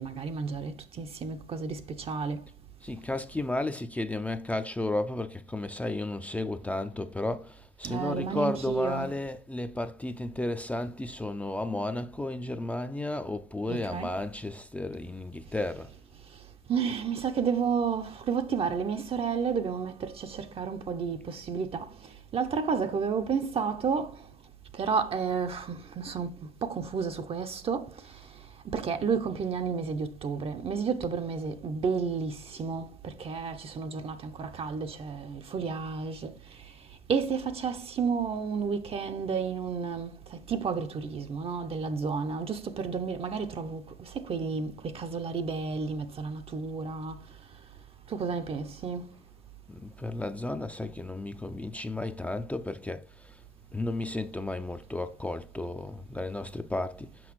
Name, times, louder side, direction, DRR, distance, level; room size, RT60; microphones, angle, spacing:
voice 1, 0.0-2.4 7.8-9.1 13.7-14.1 16.7-24.3 24.7-47.2 48.1-49.1, right 5 dB, 40° right, 0.6 m, -32 dB
voice 2, 2.8-15.9 49.7-53.4 53.7-57.3, left 2 dB, 10° left, 0.4 m, -33 dB
6.0 x 5.4 x 3.0 m
supercardioid pair, 90°, 16 cm